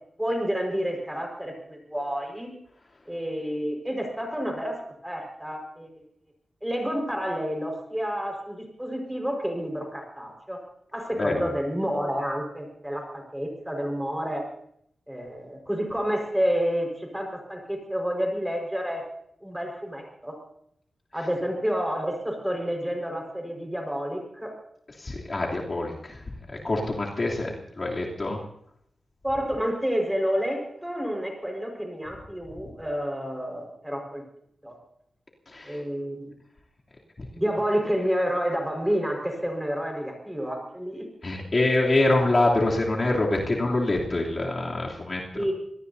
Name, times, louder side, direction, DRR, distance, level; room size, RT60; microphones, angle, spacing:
voice 1, 0.2-2.5 3.1-5.9 6.6-10.6 10.9-14.5 15.1-19.0 19.4-20.4 21.1-24.5 27.4-27.5 29.2-34.2 34.6-34.8 35.6-36.3 37.3-41.0 45.3-45.5, equal, 5° right, 2 dB, 4.9 m, -29 dB
voice 2, 11.2-11.5 25.0-26.2 26.5-28.4 35.5-35.8 41.2-45.4, left 2 dB, 40° left, -3 dB, 3.1 m, -25 dB
26.0 x 19.0 x 2.8 m, 0.70 s
wide cardioid pair, 95°, 0 cm